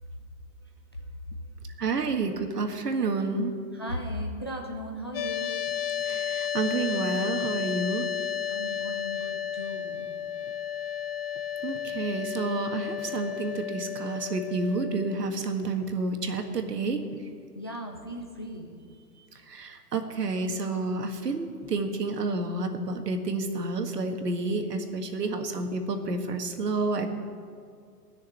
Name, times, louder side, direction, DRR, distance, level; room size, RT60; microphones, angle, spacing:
voice 1, 1.8-3.5 6.1-8.1 11.6-17.0 19.5-27.1, right 3 dB, 85° right, 5 dB, 1.8 m, -30 dB
voice 2, 3.7-5.6 8.5-10.1 17.5-18.8 19.1-19.3, equal, 20° left, 1 dB, 0.3 m, -37 dB
sound 1, 5.1-15.2, left 9 dB, 40° left, 0.7 m, -32 dB
17.5 x 6.6 x 9.8 m, 2.2 s
hypercardioid pair, 135°, 47 cm